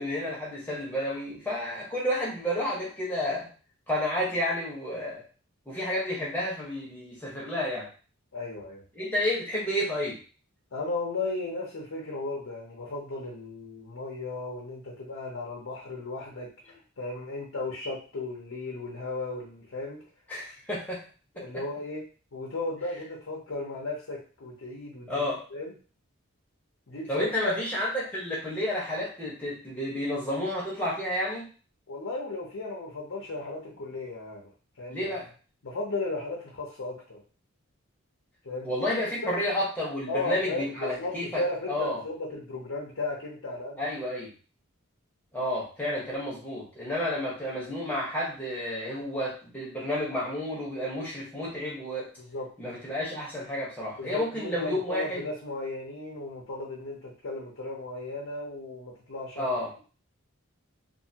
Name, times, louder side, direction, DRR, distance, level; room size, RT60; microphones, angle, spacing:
voice 1, 0.0-3.5 3.9-5.2 5.7-7.9 8.9-10.2 20.3-21.0 21.4-21.6 25.1-25.4 27.1-31.5 34.9-35.3 38.6-41.4 41.7-42.0 43.8-44.3 45.3-52.1 52.6-55.2 59.4-59.7, left 1 dB, 10° left, -6 dB, 1.0 m, -31 dB
voice 2, 8.3-8.8 10.7-16.5 17.0-20.0 21.4-22.0 22.3-25.7 26.9-27.6 31.9-34.5 34.8-35.1 35.6-37.2 38.4-39.4 40.1-43.8 52.3-52.5 54.0-59.5, left 2 dB, 75° left, -3 dB, 0.7 m, -35 dB
2.7 x 2.6 x 2.7 m, 0.37 s
head